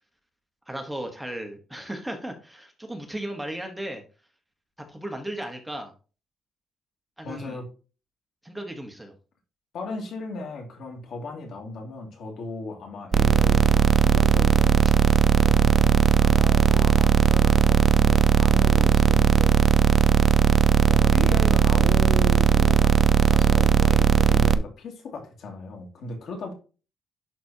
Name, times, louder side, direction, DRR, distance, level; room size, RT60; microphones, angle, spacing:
voice 1, 0.7-4.0 4.9-5.9 7.2-7.6 8.4-9.1, right 1 dB, 5° right, 4 dB, 1.1 m, -35 dB
voice 2, 7.2-7.7 9.7-19.6 20.9-26.5, left 3 dB, 70° left, 2 dB, 2.4 m, -36 dB
sound 1, 13.1-24.6, right 7 dB, 35° right, 0.4 m, -18 dB
11.0 x 4.0 x 2.8 m, 0.34 s
cardioid pair, 160°, 0 cm